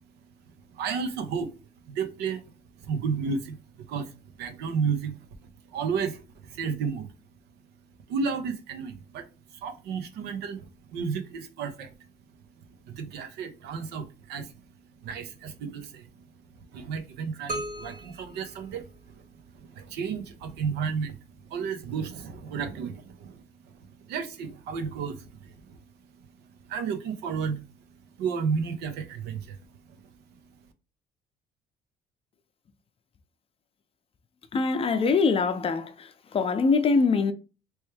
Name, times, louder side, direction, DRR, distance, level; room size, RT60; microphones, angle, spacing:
voice 1, 0.7-1.6 1.9-2.4 2.8-3.6 3.9-7.1 8.1-11.9 12.8-14.7 15.0-16.3 16.7-25.8 26.1-27.7 28.2-29.6 29.9-30.0 30.3-30.4, right 6 dB, 85° right, 0.8 m, -33 dB
sound 1, 17.5-19.4, right 1 dB, 50° right, 1.3 m, -38 dB
voice 2, 34.5-37.3, left 4 dB, 35° left, 0.6 m, -23 dB
3.3 x 3.1 x 3.2 m
cardioid pair, 110°, 17 cm